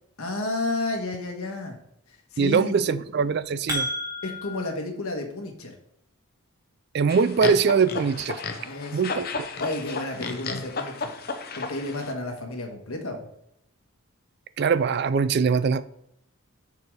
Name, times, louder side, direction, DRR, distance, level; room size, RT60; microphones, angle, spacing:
voice 1, 0.2-1.8 2.1-2.9 4.2-5.7 8.6-9.1 9.6-11.1 11.5-13.3, left 2 dB, 70° left, 1.4 m, -31 dB
voice 2, 2.4-3.9 6.9-8.4 8.9-9.3 14.6-15.9, right 5 dB, 45° right, 0.3 m, -22 dB
sound 1, 3.2-4.7, equal, 15° right, 1.5 m, -31 dB
sound 2, 7.1-12.1, left 4 dB, 45° left, 0.6 m, -33 dB
6.9 x 4.7 x 4.8 m
head